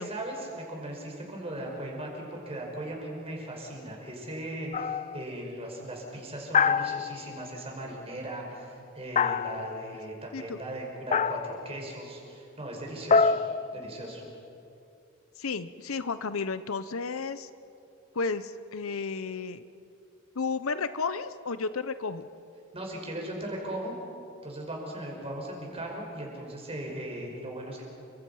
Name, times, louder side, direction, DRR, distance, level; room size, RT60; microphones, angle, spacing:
voice 1, 0.0-13.3 13.7-14.2 22.7-23.9 24.4-27.8, right 1 dB, 30° right, 0 dB, 5.5 m, -38 dB
sound 1, 4.7-5.2 6.5-7.5 9.2-9.9 11.1-11.7 13.1-14.4, left 5 dB, 35° left, 0.4 m, -26 dB
voice 2, 15.4-17.5 18.1-19.6 20.3-22.3, left 4 dB, 80° left, 13 dB, 0.8 m, -32 dB
29.0 x 25.0 x 5.6 m, 2.7 s
head